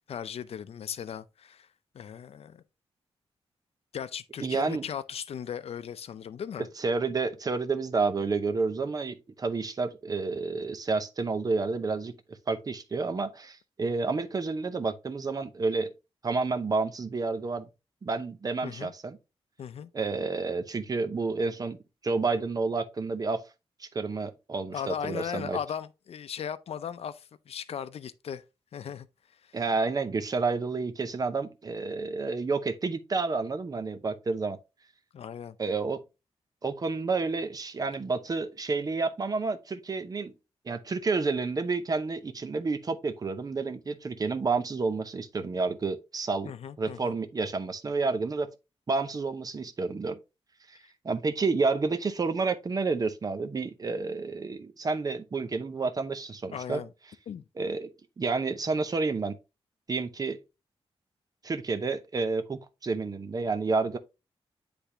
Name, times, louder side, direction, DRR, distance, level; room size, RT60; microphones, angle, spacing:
voice 1, 0.1-1.7 1.9-2.6 3.9-6.7 18.6-18.9 19.6-19.9 24.7-28.4 28.7-29.1 29.4-29.6 35.1-35.6 46.4-47.2 56.5-56.9 57.3-57.4, left 8 dB, 75° left, 0.5 m, -37 dB
voice 2, 4.4-4.8 6.8-12.1 12.5-15.9 16.2-17.7 18.0-19.2 19.9-21.8 22.0-23.4 23.8-25.6 29.5-34.6 35.6-36.0 36.6-40.3 40.7-46.5 46.8-48.5 48.9-50.2 50.7-50.8 51.0-56.8 57.6-57.9 58.2-59.4 59.9-60.4 61.4-64.0, right 4 dB, 35° right, 0.7 m, -30 dB
9.9 x 3.4 x 2.8 m
wide cardioid pair, 130°, 10 cm